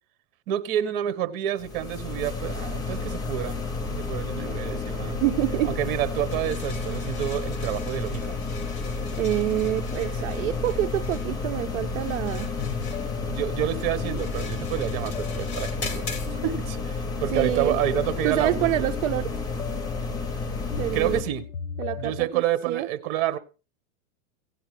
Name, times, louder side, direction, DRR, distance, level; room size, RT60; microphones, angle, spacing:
voice 1, 0.5-3.6 3.9-5.2 5.6-8.3 13.0-16.9 17.2-18.7 20.9-21.4 22.0-23.4, right 12 dB, 45° right, 1.4 m, -28 dB
sound 1, 1.6-21.2, left 4 dB, 10° left, 0.6 m, -31 dB
voice 2, 5.2-5.7 9.1-12.5 17.3-17.8 18.2-19.3 20.8-21.2 21.8-22.9, right 14 dB, 65° right, 0.7 m, -27 dB
sound 2, 6.3-16.3, left 5 dB, 50° left, 3.9 m, -42 dB
sound 3, 12.6-22.3, left 8 dB, 75° left, 1.2 m, -39 dB
17.0 x 10.0 x 3.3 m
supercardioid pair, 160°, 41 cm